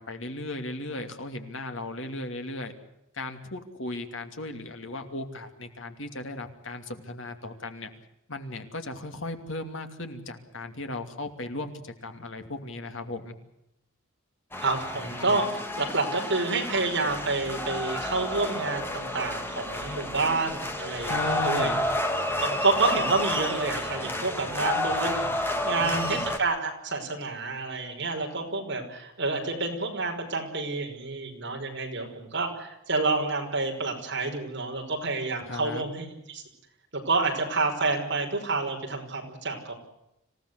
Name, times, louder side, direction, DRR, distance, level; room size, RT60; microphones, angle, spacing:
voice 1, 0.0-2.7 3.1-7.9 8.3-13.3 14.9-15.4 21.1-21.9 25.8-26.2 35.4-35.8, left 2 dB, 60° left, 6 dB, 2.8 m, -36 dB
sound 1, 14.5-26.4, left 1 dB, 10° left, 2.1 m, -30 dB
voice 2, 14.6-21.7 22.4-36.4 36.9-39.7, right 3 dB, 55° right, 2 dB, 5.6 m, -29 dB
26.5 x 17.0 x 8.1 m, 0.85 s
head